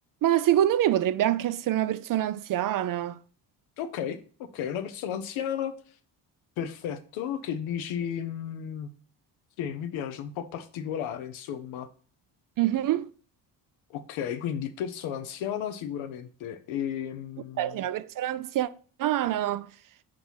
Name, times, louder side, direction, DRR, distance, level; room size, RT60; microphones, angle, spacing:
voice 1, 0.2-3.2 12.6-13.1 17.6-18.7 19.0-19.7, right 12 dB, 45° right, 0.4 m, -25 dB
voice 2, 3.8-4.2 4.5-5.7 6.6-8.9 9.6-11.9 13.9-17.8, left 9 dB, 70° left, 0.9 m, -33 dB
4.7 x 3.8 x 5.5 m
hypercardioid pair, 60°, 49 cm